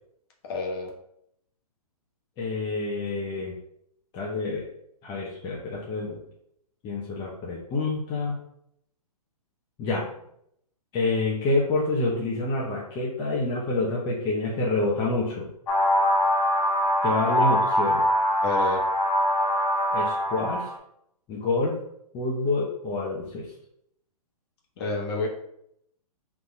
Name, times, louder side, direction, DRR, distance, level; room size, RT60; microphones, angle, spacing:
voice 1, 0.5-0.9 18.4-18.8 24.8-25.3, left 3 dB, 40° left, 0 dB, 1.3 m, -28 dB
voice 2, 2.4-3.5 4.1-4.6 5.0-6.2 6.8-8.3 9.8-10.0 10.9-15.5 17.0-18.0 19.9-20.7 21.3-21.7 22.1-23.5, left 2 dB, 20° left, -4 dB, 0.8 m, -27 dB
sound 1, 15.7-20.8, equal, 60° left, 1.3 m, -23 dB
4.0 x 2.9 x 3.9 m, 0.72 s
hypercardioid pair, 135°, 20 cm